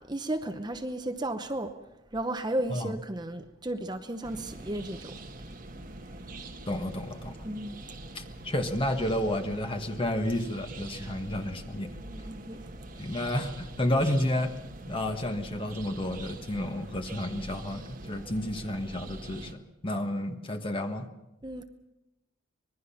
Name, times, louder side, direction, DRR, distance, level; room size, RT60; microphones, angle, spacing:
voice 1, 0.0-1.7 2.1-5.2 7.4-7.8 10.9-11.2 12.0-12.7 21.4-21.6, right 1 dB, 20° right, 0.8 m, -34 dB
sound 1, 4.2-19.5, right 2 dB, 40° right, 1.4 m, -44 dB
voice 2, 6.7-7.4 8.1-11.9 13.0-14.5 14.9-21.1, left 1 dB, 25° left, 1.5 m, -31 dB
25.5 x 20.5 x 5.7 m
head